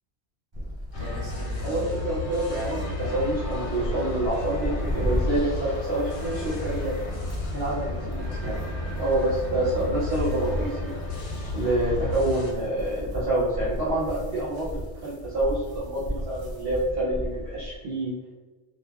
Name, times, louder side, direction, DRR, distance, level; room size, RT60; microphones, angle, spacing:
sound 1, 0.5-17.8, equal, 35° right, 0.4 m, -35 dB
sound 2, 0.9-12.5, left 2 dB, 75° left, 0.9 m, -32 dB
voice 1, 1.6-6.9 7.5-8.6 9.0-10.9 11.5-18.1, right 1 dB, 60° right, -8 dB, 0.9 m, -27 dB
3.1 x 2.2 x 2.3 m, 1.3 s
omnidirectional pair, 1.2 m